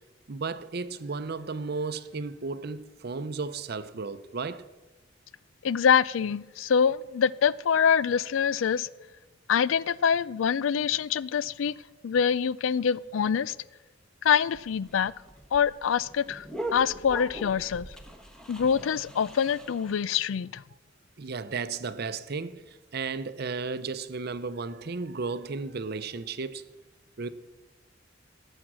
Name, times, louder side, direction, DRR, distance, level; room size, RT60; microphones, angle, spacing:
voice 1, 0.3-4.6 21.2-26.6 27.2-27.3, right 4 dB, 55° right, 0.7 m, -34 dB
voice 2, 5.6-8.9 9.5-11.7 12.0-13.5 14.2-15.1 15.5-16.5 16.7-17.9 18.5-20.6, left 7 dB, 90° left, 0.4 m, -25 dB
sound 1, 14.3-20.0, right 1 dB, 5° left, 1.1 m, -41 dB
18.0 x 7.3 x 6.1 m
head